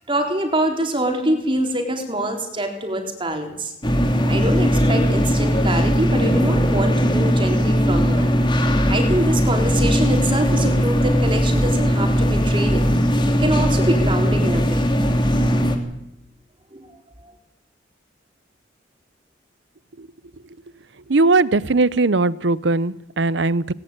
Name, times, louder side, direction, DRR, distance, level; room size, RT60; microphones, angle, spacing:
voice 1, 0.1-3.7 4.3-8.3 8.9-12.9 13.2-14.8 16.7-16.9 17.2-17.3, right 1 dB, 25° right, 4 dB, 3.8 m, -24 dB
sound 1, 3.8-15.8, equal, 25° left, 2.8 m, -19 dB
voice 2, 21.1-23.7, right 3 dB, 75° right, 20 dB, 0.8 m, -19 dB
19.5 x 19.0 x 8.9 m, 0.82 s
head